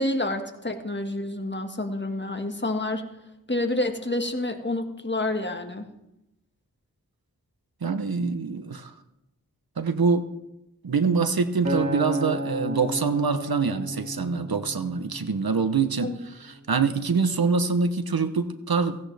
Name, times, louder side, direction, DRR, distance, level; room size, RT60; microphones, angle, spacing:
voice 1, 0.0-3.0 3.5-5.9 16.0-16.2, left 1 dB, 30° left, 5 dB, 1.7 m, -28 dB
voice 2, 7.8-8.9 9.8-10.2 10.8-16.1 16.4-19.0, right 5 dB, 75° right, 10 dB, 1.0 m, -25 dB
Acoustic guitar, 11.6-16.0 16.6-16.8, equal, 50° right, 2.4 m, -32 dB
16.5 x 15.5 x 3.4 m, 0.90 s
wide cardioid pair, 40°, 36 cm